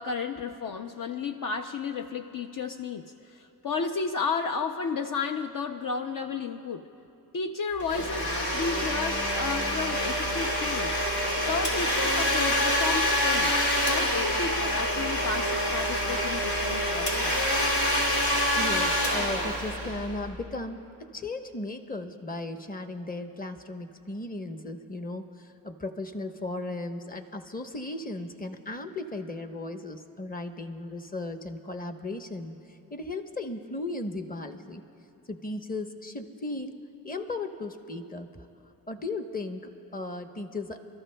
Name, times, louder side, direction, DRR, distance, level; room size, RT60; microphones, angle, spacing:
voice 1, 0.0-6.8 7.3-11.0 11.5-13.6 13.8-17.5, left 5 dB, 55° left, 7 dB, 0.6 m, -33 dB
Domestic sounds home sounds, 7.8-20.4, equal, 75° left, 2.6 m, -26 dB
voice 2, 18.6-34.8 35.3-36.7 37.0-38.5 38.9-40.8, left 2 dB, 20° left, 6 dB, 1.0 m, -36 dB
29.5 x 13.5 x 2.2 m, 2.8 s
cardioid pair, 60°, 38 cm